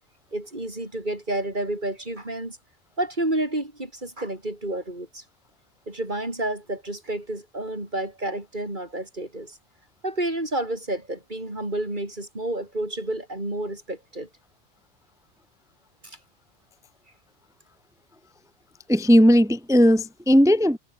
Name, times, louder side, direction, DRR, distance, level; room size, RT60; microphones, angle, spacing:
voice 1, 0.3-2.6 3.0-5.2 5.9-9.6 10.0-14.3 16.0-16.2, right 1 dB, 40° right, 5.9 m, -30 dB
voice 2, 18.9-20.8, equal, 5° right, 0.7 m, -17 dB
omnidirectional pair, 1.3 m